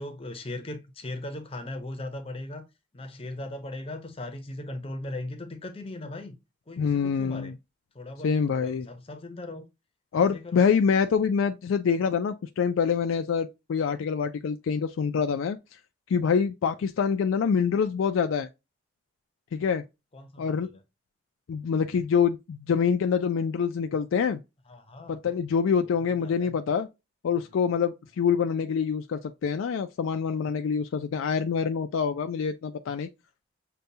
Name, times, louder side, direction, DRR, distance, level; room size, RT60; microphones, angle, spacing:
voice 1, 0.0-2.6 2.9-6.4 6.7-7.5 7.9-9.6 10.2-10.7 20.1-20.8 24.7-25.2 26.2-26.5, left 1 dB, 30° left, 0.6 m, -38 dB
voice 2, 6.8-7.5 8.2-8.9 10.1-15.8 16.1-18.5 19.5-19.8 20.4-20.7 21.5-24.4 25.1-26.9 27.2-33.1, left 6 dB, 80° left, 0.3 m, -26 dB
6.6 x 2.2 x 2.7 m
head